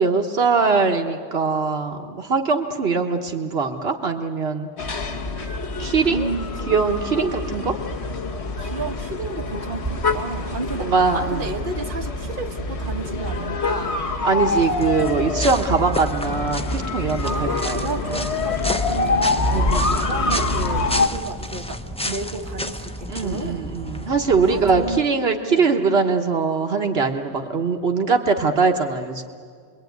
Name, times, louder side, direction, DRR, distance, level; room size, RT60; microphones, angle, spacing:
voice 1, 0.0-5.0 5.8-6.3 6.7-7.7 10.8-11.5 14.2-17.9 19.5-20.0 23.1-29.2, right 4 dB, 70° right, 4 dB, 1.4 m, -22 dB
sound 1, 4.8-21.1, left 2 dB, 80° left, 1.6 m, -25 dB
voice 2, 6.1-6.8 7.1-7.3 8.6-14.0 17.2-23.7 24.5-25.1 25.5-25.7, right 3 dB, 55° right, 3 dB, 1.5 m, -32 dB
sound 2, 9.4-14.8 15.1-15.3 15.6-15.7 16.1-17.5 17.8-18.3 19.8-20.5 20.9-21.0, right 4 dB, 30° right, 2.8 m, -42 dB
sound 3, 14.5-25.0, equal, 5° left, 0.7 m, -32 dB
28.0 x 22.0 x 9.3 m, 2.1 s
omnidirectional pair, 1.1 m